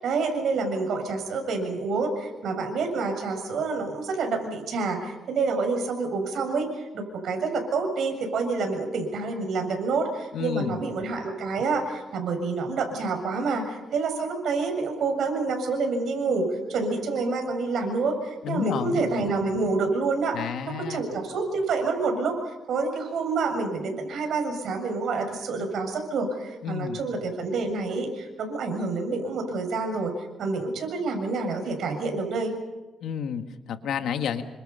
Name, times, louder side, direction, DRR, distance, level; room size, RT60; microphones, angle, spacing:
voice 1, 0.0-32.5, right 4 dB, 70° right, 5 dB, 7.0 m, -28 dB
voice 2, 10.3-10.8 18.4-19.0 20.3-21.0 26.6-27.0 33.0-34.4, left 8 dB, 75° left, 7 dB, 1.8 m, -30 dB
28.5 x 25.5 x 5.7 m, 1.1 s
cardioid pair, 120°, 0 cm